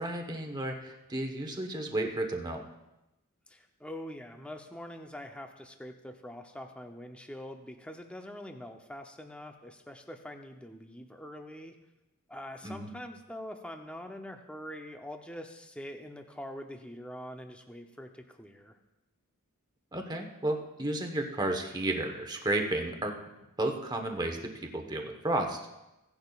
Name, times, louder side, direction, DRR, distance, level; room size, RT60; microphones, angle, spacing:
voice 1, 0.0-2.6 12.6-12.9 19.9-23.2 23.6-25.7, right 1 dB, 20° right, 3 dB, 1.1 m, -32 dB
voice 2, 3.5-11.8 12.3-18.8, left 1 dB, 5° left, 4 dB, 0.7 m, -44 dB
17.0 x 10.5 x 2.4 m, 0.95 s
head